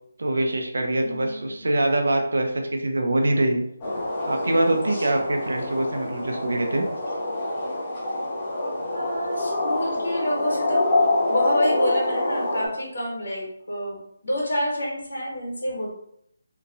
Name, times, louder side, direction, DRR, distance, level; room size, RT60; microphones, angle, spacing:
voice 1, 0.2-3.6 4.3-6.8, right 1 dB, 85° right, 4 dB, 0.5 m, -24 dB
voice 2, 1.0-1.6 4.9-5.1 8.9-10.8 11.3-16.0, equal, 90° left, -4 dB, 1.2 m, -28 dB
sound 1, 3.8-12.7, left 2 dB, 20° left, 0.5 m, -26 dB
2.9 x 2.2 x 2.5 m, 0.74 s
hypercardioid pair, 175°, 0 cm